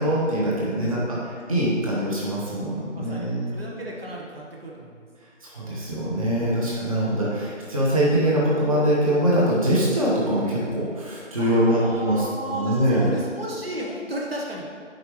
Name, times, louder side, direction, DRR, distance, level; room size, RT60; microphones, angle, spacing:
voice 1, 0.0-1.2 1.5-3.5 5.4-13.1, equal, 25° right, -6 dB, 1.3 m, -23 dB
voice 2, 2.9-5.1 11.4-14.7, right 1 dB, 50° right, -3 dB, 1.4 m, -34 dB
12.0 x 4.9 x 3.2 m, 2.1 s
figure-of-eight pair, 175°, 38 cm